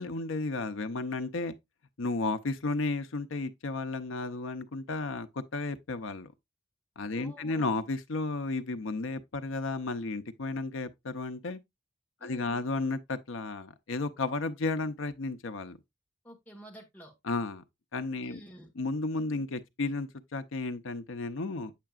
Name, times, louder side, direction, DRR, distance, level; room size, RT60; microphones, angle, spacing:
voice 1, 0.0-1.6 2.0-6.3 7.0-11.6 12.2-15.8 17.2-17.6 17.9-18.4 18.8-21.7, left 3 dB, 85° left, 0.7 m, -33 dB
voice 2, 7.1-7.8 12.2-12.6 16.2-17.1 18.2-18.7, equal, 10° left, 1.5 m, -49 dB
8.2 x 5.7 x 2.4 m
head